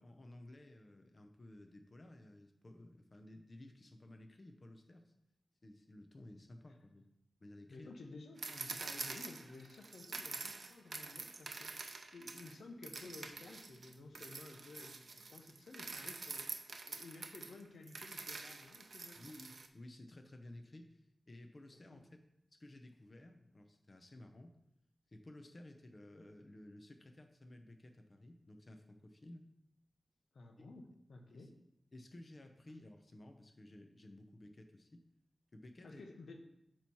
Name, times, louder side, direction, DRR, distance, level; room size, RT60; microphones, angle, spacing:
voice 1, 0.0-5.1 5.6-7.1 7.4-7.9 19.2-22.0 22.5-24.6 25.1-29.5 30.6-30.7 31.3-31.5 31.9-35.0 35.5-36.0, left 1 dB, 40° left, 5 dB, 0.7 m, -55 dB
voice 2, 7.7-16.6 16.9-19.3 21.9-22.0 30.3-31.5 35.8-36.4, left 3 dB, 90° left, 3 dB, 0.9 m, -54 dB
sound 1, 8.4-12.5 12.8-19.7, right 4 dB, 70° right, 0.6 m, -46 dB
8.7 x 3.1 x 5.5 m, 0.80 s
wide cardioid pair, 85°, 0 cm